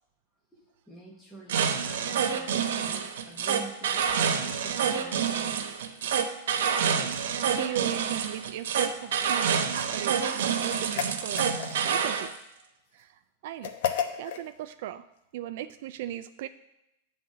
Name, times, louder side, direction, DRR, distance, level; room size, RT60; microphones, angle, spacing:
voice 1, 0.5-6.1 6.6-6.7, right 2 dB, 5° left, -4 dB, 0.9 m, -48 dB
sound 1, 1.5-12.3, right 7 dB, 90° right, 0.9 m, -27 dB
voice 2, 6.6-7.1 7.5-9.6 9.9-12.3 12.9-13.7 14.2-15.0 15.3-16.5, right 12 dB, 55° right, 10 dB, 0.3 m, -37 dB
sound 2, 10.7-12.0 13.6-14.5, left 9 dB, 60° left, 0.8 m, -32 dB
9.3 x 3.9 x 7.3 m, 0.86 s
supercardioid pair, 170°, 0 cm